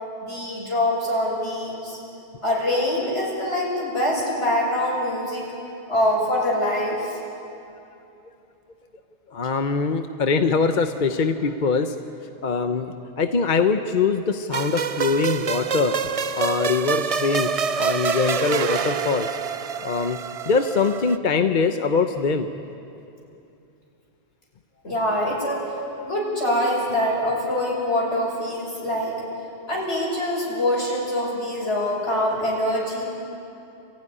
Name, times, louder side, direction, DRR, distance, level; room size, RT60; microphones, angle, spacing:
voice 1, 0.2-2.0 2.4-5.5 5.9-7.2 24.8-25.6 26.0-29.2 29.7-33.1, left 1 dB, 70° left, -4 dB, 6.4 m, -24 dB
voice 2, 9.3-11.9 12.4-15.9 16.4-17.5 17.7-19.3 19.8-20.2 20.5-22.5, left 4 dB, 45° left, 7 dB, 0.9 m, -22 dB
sound 1, 14.5-21.2, right 6 dB, 45° right, 0.5 m, -26 dB
26.5 x 15.0 x 9.8 m, 2.8 s
omnidirectional pair, 1.2 m